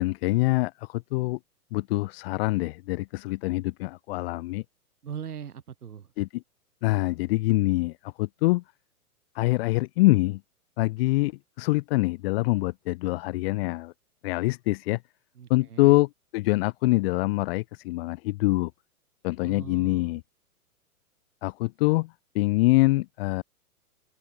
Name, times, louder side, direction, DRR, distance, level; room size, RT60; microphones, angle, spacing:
voice 1, 0.0-1.4 1.7-4.6 6.2-6.4 6.8-7.9 8.2-8.6 9.3-10.4 10.8-11.3 11.6-13.9 14.2-15.0 15.5-18.7 19.2-20.2 21.4-22.1 22.3-23.4, left 21 dB, 40° left, 1.6 m, -25 dB
voice 2, 5.0-6.1 15.4-16.0 19.4-20.2, right 8 dB, 75° right, 5.7 m, -40 dB
open air
hypercardioid pair, 135°, 45 cm